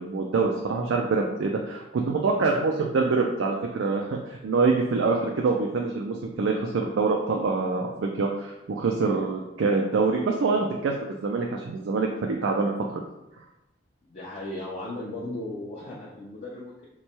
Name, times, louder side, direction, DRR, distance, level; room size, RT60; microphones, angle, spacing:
voice 1, 0.0-13.0, right 4 dB, 80° right, 0 dB, 0.4 m, -25 dB
voice 2, 14.1-16.9, left 1 dB, 40° left, -6 dB, 0.6 m, -36 dB
3.0 x 2.2 x 4.1 m, 0.93 s
head